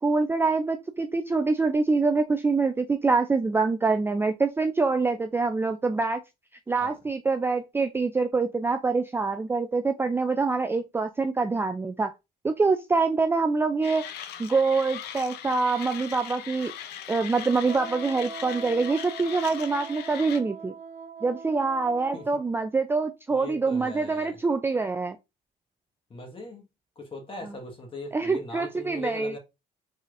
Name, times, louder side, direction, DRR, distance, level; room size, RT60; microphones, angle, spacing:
voice 1, 0.0-6.2 6.7-12.1 12.4-14.1 14.4-16.7 17.1-20.7 21.2-25.2 28.1-29.3, right 4 dB, 15° right, 0.3 m, -25 dB
Mechanisms, 13.8-20.4, left 10 dB, 75° left, 0.6 m, -40 dB
Wind instrument woodwind instrument, 17.6-22.4, right 5 dB, 50° right, 0.9 m, -41 dB
voice 2, 23.3-24.4 26.1-26.7 26.9-29.4, left 2 dB, 30° left, 1.5 m, -39 dB
4.8 x 4.1 x 2.5 m
cardioid pair, 110°, 17 cm